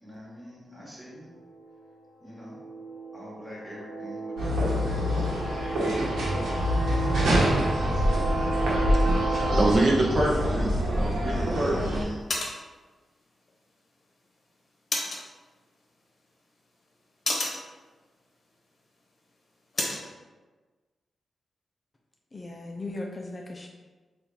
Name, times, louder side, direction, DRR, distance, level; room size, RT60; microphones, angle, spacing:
voice 1, 0.0-1.2 2.2-2.6 3.1-4.3 4.6-5.1 5.7-6.2 7.8-8.5, equal, 10° right, -6 dB, 1.3 m, -45 dB
sound 1, 1.4-1.5 2.3-9.7, right 2 dB, 65° right, 0.9 m, -32 dB
sound 2, 4.4-12.0, equal, 85° right, 0.9 m, -26 dB
voice 2, 8.8-12.2, right 2 dB, 40° right, -3 dB, 0.5 m, -27 dB
sound 3, 10.6-20.1, left 2 dB, 50° left, 0.9 m, -37 dB
voice 3, 22.3-23.7, left 2 dB, 30° left, 1 dB, 0.3 m, -37 dB
3.5 x 2.3 x 4.1 m, 1.3 s
wide cardioid pair, 105°, 0 cm